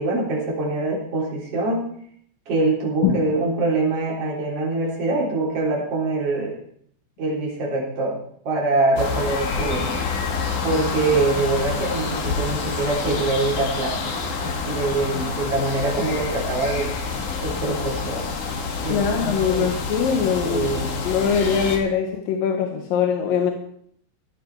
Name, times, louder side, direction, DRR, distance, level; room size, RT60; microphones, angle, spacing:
voice 1, 0.0-1.9 2.5-6.6 7.2-8.2 8.4-10.0 10.6-14.1 14.4-16.9 17.4-18.2 18.8-19.7 20.4-20.9, right 2 dB, 45° right, -5 dB, 4.5 m, -24 dB
sound 1, 9.0-21.8, left 4 dB, 65° left, 3.4 m, -27 dB
voice 2, 18.9-20.7 21.0-23.5, left 7 dB, 90° left, 3 dB, 3.0 m, -22 dB
16.0 x 11.5 x 4.7 m, 0.65 s
omnidirectional pair, 3.8 m